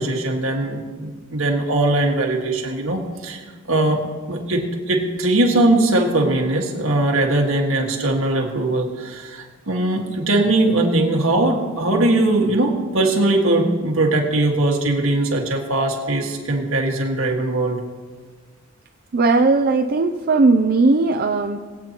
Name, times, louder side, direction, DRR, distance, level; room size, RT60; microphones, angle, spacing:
voice 1, 0.0-3.4 3.7-4.0 4.3-17.8, right 2 dB, 70° right, 1 dB, 1.8 m, -20 dB
voice 2, 19.1-21.6, right 3 dB, 45° right, 4 dB, 0.4 m, -17 dB
21.0 x 8.6 x 3.0 m, 1.5 s
head